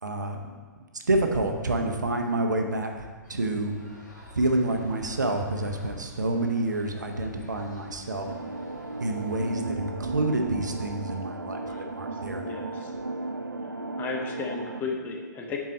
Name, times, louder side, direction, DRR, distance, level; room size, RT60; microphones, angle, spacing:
voice 1, 0.0-3.7 4.4-8.3 9.0-12.7, right 2 dB, 70° right, 3 dB, 0.9 m, -28 dB
sound 1, 3.2-9.5, equal, 70° left, 1.6 m, -50 dB
sound 2, 8.3-14.8, right 2 dB, 85° right, 0.4 m, -34 dB
voice 2, 11.6-12.9 14.0-15.6, left 4 dB, 20° left, 0 dB, 0.8 m, -35 dB
7.5 x 4.7 x 4.2 m, 1.5 s
figure-of-eight pair, 115°, 10 cm